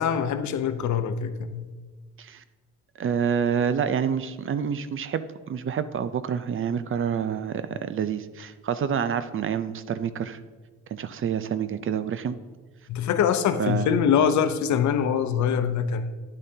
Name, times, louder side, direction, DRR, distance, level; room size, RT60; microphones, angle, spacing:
voice 1, 0.0-1.7 12.9-16.1, left 7 dB, 70° left, 0.7 m, -24 dB
voice 2, 3.0-10.4 10.9-12.4 13.6-13.9, right 7 dB, 45° right, 0.5 m, -28 dB
11.0 x 8.4 x 2.8 m
cardioid pair, 90°, 30 cm